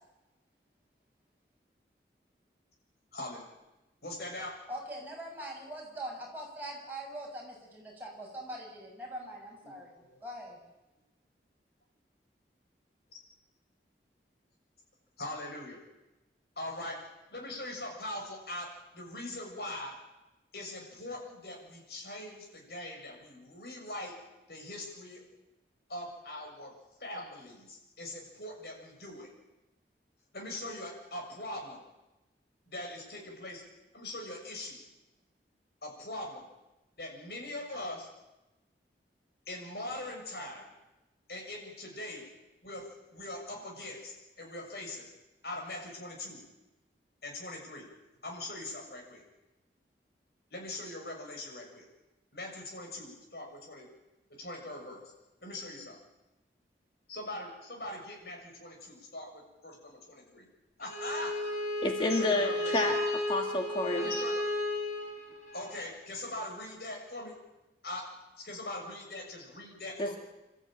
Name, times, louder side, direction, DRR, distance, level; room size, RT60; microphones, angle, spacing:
voice 1, 3.1-3.4 4.0-4.6 9.6-10.2 15.2-15.8 16.6-20.0 20.5-24.2 24.5-25.2 25.9-26.7 27.0-29.3 30.3-31.8 32.7-33.6 33.9-34.8 35.8-36.4 37.0-38.1 39.5-40.7 41.3-42.3 42.6-45.0 45.4-46.4 47.2-47.9 48.2-49.2 50.5-51.8 52.3-53.9 54.3-55.0 55.4-56.0 57.1-60.5 60.8-61.3 62.0-63.0 63.9-64.4 65.5-67.3 67.8-70.2, left 1 dB, 65° left, 1 dB, 6.7 m, -41 dB
voice 2, 4.7-9.9 10.2-10.6, right 1 dB, 10° right, -2 dB, 6.4 m, -42 dB
Bowed string instrument, 60.8-65.8, left 1 dB, 45° left, 4.7 m, -33 dB
voice 3, 61.8-63.0 63.3-64.1 70.0-70.2, left 1 dB, 30° left, 3 dB, 1.7 m, -29 dB
27.5 x 13.5 x 9.2 m, 0.99 s
head